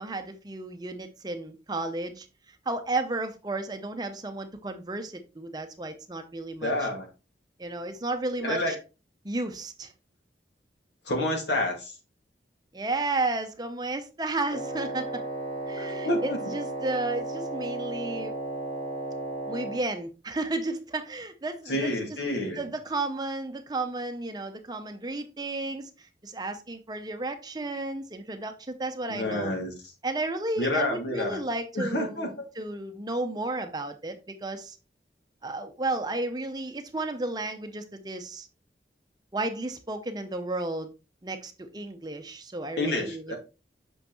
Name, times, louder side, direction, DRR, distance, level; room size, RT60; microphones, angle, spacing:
voice 1, 0.0-2.3 2.7-6.9 7.6-8.8 9.2-9.9 12.7-15.2 15.7-18.4 19.5-22.2 22.6-29.5 30.0-34.8 35.4-38.5 39.3-40.9 41.2-43.3, right 2 dB, 20° right, 0.6 m, -33 dB
voice 2, 6.6-7.1 8.4-8.8 11.1-11.9 15.8-16.4 21.7-22.6 29.1-29.7 30.6-31.4 31.7-32.3 42.8-43.4, left 1 dB, 80° left, 2.0 m, -28 dB
Wind instrument woodwind instrument, 14.5-19.9, right 2 dB, 50° left, 3.5 m, -34 dB
6.2 x 5.7 x 3.0 m
head